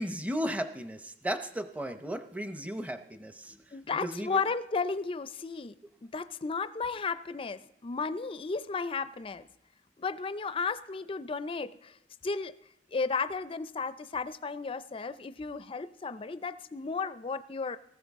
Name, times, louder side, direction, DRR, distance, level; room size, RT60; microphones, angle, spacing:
voice 1, 0.0-3.7 4.0-4.4, equal, 10° right, 8 dB, 0.7 m, -35 dB
voice 2, 3.7-5.7 6.0-9.5 10.0-12.0 12.2-12.5 12.9-17.8, left 4 dB, 30° left, 13 dB, 0.4 m, -34 dB
18.5 x 14.5 x 3.6 m, 0.80 s
head